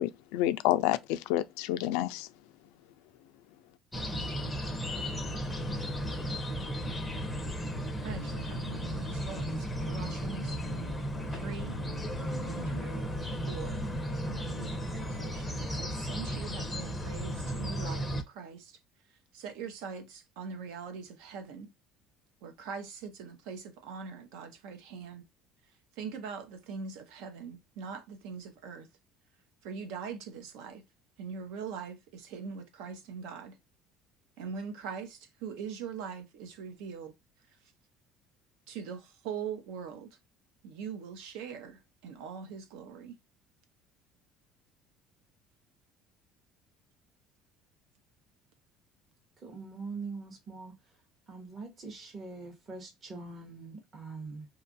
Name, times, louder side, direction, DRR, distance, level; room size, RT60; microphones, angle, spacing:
voice 1, 0.0-2.3, left 14 dB, 90° left, 0.3 m, -29 dB
sound 1, 3.9-18.2, equal, 5° left, 0.5 m, -35 dB
voice 2, 8.0-9.5 9.8-10.6 11.3-11.8 12.4-13.1 13.5-13.9 14.2-18.7 19.3-21.7 22.4-25.2 26.0-28.9 29.6-30.8 31.2-33.5 34.4-37.1 38.7-40.1 40.6-43.1, right 6 dB, 80° right, 0.7 m, -42 dB
voice 3, 49.4-50.7 51.3-54.4, right 4 dB, 25° right, 0.7 m, -43 dB
2.8 x 2.4 x 2.5 m
cardioid pair, 160°, 0 cm